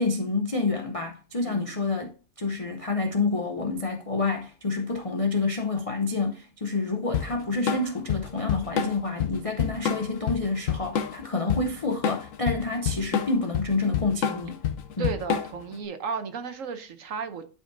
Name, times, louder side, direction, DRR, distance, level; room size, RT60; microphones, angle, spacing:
voice 1, 0.0-14.6 15.0-15.1, left 3 dB, 50° left, 0.4 m, -28 dB
Drum kit / Drum, 7.1-15.7, left 8 dB, 65° left, 1.1 m, -28 dB
voice 2, 15.0-17.4, right 5 dB, 60° right, 1.1 m, -34 dB
11.5 x 5.0 x 2.6 m
omnidirectional pair, 1.6 m